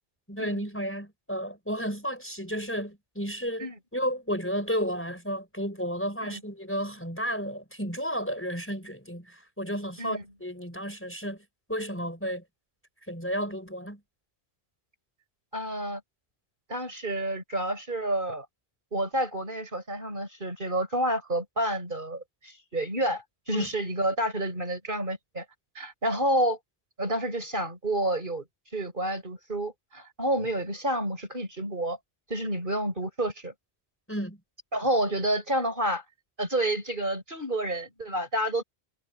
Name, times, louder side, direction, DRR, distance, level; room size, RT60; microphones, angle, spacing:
voice 1, 0.3-11.4 11.7-12.4 13.1-14.0 23.5-23.7 34.1-34.4, equal, 10° left, 4.8 m, -32 dB
voice 2, 15.5-16.0 16.7-18.4 18.9-25.4 25.7-26.6 27.0-28.5 28.7-32.0 32.3-33.5 34.7-36.0 36.4-38.6, right 1 dB, 50° right, 6.7 m, -29 dB
omnidirectional pair, 1.1 m